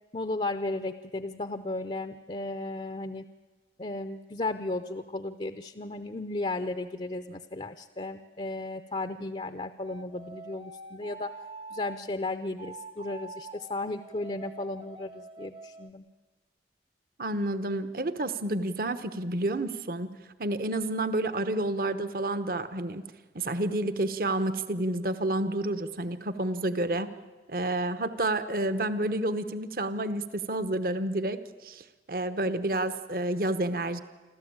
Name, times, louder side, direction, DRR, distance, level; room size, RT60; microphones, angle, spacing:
voice 1, 0.1-3.3 3.8-11.3 11.7-16.1, left 2 dB, 35° left, 9 dB, 0.6 m, -35 dB
sound 1, 9.8-12.0 12.6-15.9, right 3 dB, 30° right, 0.6 m, -45 dB
voice 2, 17.2-20.1 20.4-23.0 23.3-27.1 27.5-34.0, right 1 dB, 55° right, 12 dB, 1.0 m, -30 dB
27.0 x 13.5 x 8.7 m, 1.3 s
head